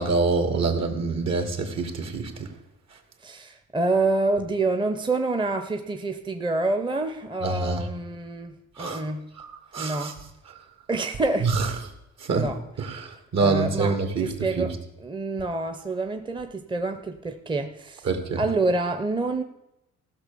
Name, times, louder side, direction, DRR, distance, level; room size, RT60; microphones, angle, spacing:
voice 1, 0.0-2.3 7.4-7.8 8.8-9.0 9.4-9.5 9.7-10.1 11.4-11.7 12.2-12.4 12.8-14.7 18.1-18.4, right 4 dB, 60° right, 6 dB, 2.2 m, -25 dB
voice 2, 3.2-9.3 9.8-10.2 10.9-11.7 12.3-12.6 12.9-13.1 13.4-18.1 18.4-19.4, right 3 dB, 15° right, 7 dB, 0.8 m, -27 dB
15.5 x 6.2 x 7.0 m, 0.89 s
cardioid pair, 90°, 30 cm